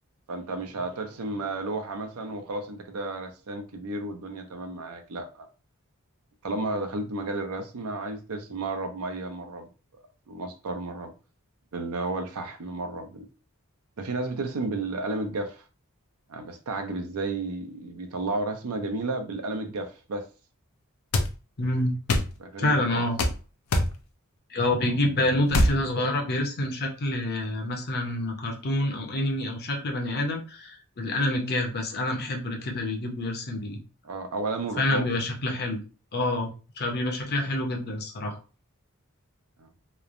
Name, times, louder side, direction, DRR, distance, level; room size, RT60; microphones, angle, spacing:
voice 1, 0.3-5.5 6.4-9.7 10.3-11.1 11.7-13.3 14.0-15.6 16.3-20.3 22.4-23.0 34.0-35.1 39.6-39.7, right 2 dB, 75° right, 0.5 m, -32 dB
sound 1, 21.1-21.3 22.1-22.3 23.2-23.4 23.7-23.9 25.5-25.8, left 1 dB, 85° left, 0.5 m, -22 dB
voice 2, 21.6-21.9 22.6-23.2 24.5-33.8 34.8-35.8 36.1-38.4, left 1 dB, 45° left, 0.6 m, -27 dB
3.0 x 2.0 x 2.5 m
head